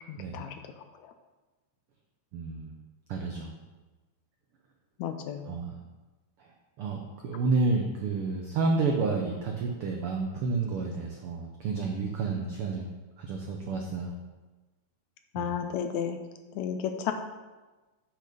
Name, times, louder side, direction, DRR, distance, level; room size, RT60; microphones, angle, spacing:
voice 1, 0.1-0.5 5.0-5.5 15.3-16.2 16.5-17.1, left 8 dB, 80° left, 7 dB, 1.8 m, -32 dB
voice 2, 2.3-2.7 3.1-3.5 5.5-5.8 6.4-6.5 6.8-12.8 13.2-14.1 15.3-15.6, right 3 dB, 85° right, 2 dB, 1.2 m, -30 dB
8.3 x 6.1 x 5.1 m, 1.2 s
omnidirectional pair, 3.6 m